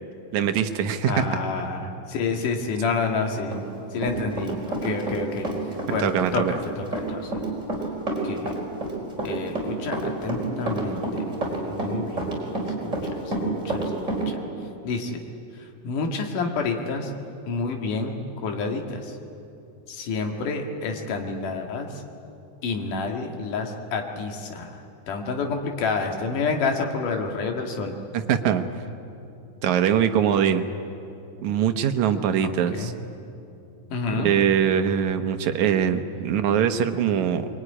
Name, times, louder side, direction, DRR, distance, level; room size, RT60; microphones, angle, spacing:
voice 1, 0.3-1.2 6.0-6.5 28.1-28.9 29.6-30.6 31.4-32.9 34.2-37.5, right 8 dB, 70° right, 8 dB, 2.4 m, -22 dB
voice 2, 1.1-3.6 3.9-5.5 5.9-7.4 8.2-8.5 9.2-11.2 11.6-12.3 12.8-12.9 13.3-14.1 14.8-15.2 15.8-17.1 17.5-19.0 19.9-21.9 22.6-24.8 25.1-27.9 32.7-32.9 33.9-34.3, left 4 dB, 90° left, 3 dB, 3.5 m, -28 dB
Run, 3.5-5.2 5.4-14.2, right 2 dB, 20° right, 4.8 m, -29 dB
24.0 x 22.5 x 9.8 m, 2.7 s
omnidirectional pair, 3.6 m